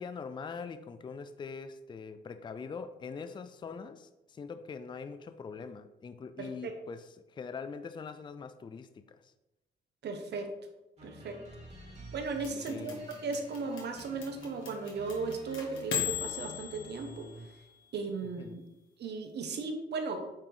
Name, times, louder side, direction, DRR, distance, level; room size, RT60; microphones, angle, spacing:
voice 1, 0.0-9.2 12.7-13.0 18.4-18.6, left 5 dB, 25° left, 11 dB, 0.4 m, -43 dB
voice 2, 6.4-6.7 10.0-10.5 11.0-11.4 12.1-17.3 17.9-18.5 19.0-20.2, right 4 dB, 60° right, 5 dB, 1.0 m, -36 dB
sound 1, 11.0-17.7, right 1 dB, 35° right, 2.0 m, -50 dB
sound 2, 12.4-17.8, left 9 dB, 75° left, 1.5 m, -38 dB
8.8 x 3.0 x 3.8 m, 0.97 s
cardioid pair, 90°, 20 cm